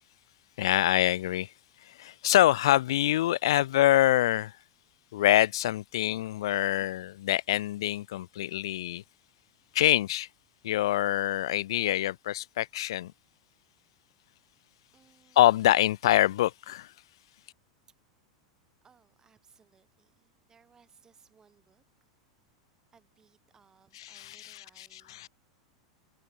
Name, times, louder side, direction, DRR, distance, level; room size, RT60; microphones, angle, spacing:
voice 1, 0.6-1.5 1.8-4.6 5.1-9.0 9.7-10.3 10.6-13.1 15.4-16.9 23.9-25.3, left 14 dB, 70° left, 0.7 m, -25 dB
voice 2, 14.9-15.7 18.8-21.8 22.9-25.3, right 6 dB, 20° right, 7.1 m, -64 dB
hypercardioid pair, 95°, 3 cm